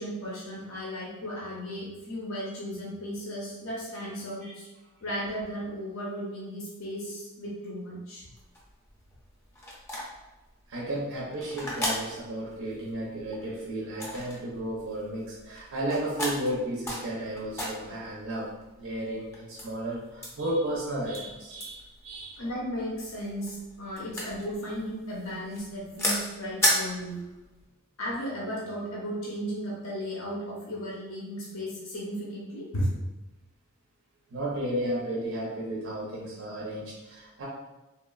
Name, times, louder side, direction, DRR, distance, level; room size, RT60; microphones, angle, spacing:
voice 1, 0.0-4.7 5.0-8.3 22.4-27.2 28.0-32.9, equal, 65° left, -5 dB, 0.6 m, -35 dB
sound 1, 8.4-27.6, equal, 15° left, 0.5 m, -35 dB
voice 2, 10.7-18.5 18.8-22.4 34.3-37.4, right 1 dB, 65° right, -5 dB, 0.5 m, -33 dB
2.9 x 2.0 x 2.3 m, 1.1 s
head